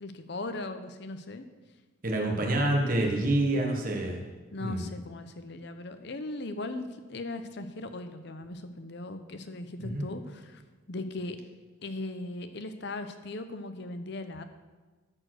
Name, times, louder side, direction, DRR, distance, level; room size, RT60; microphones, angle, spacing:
voice 1, 0.0-1.5 4.5-10.6 10.9-11.4 11.8-14.4, left 2 dB, 55° left, 9 dB, 0.7 m, -38 dB
voice 2, 2.0-4.2 4.6-4.9 9.8-10.0, right 1 dB, 40° right, 0 dB, 1.1 m, -27 dB
13.0 x 4.4 x 6.3 m, 1.3 s
head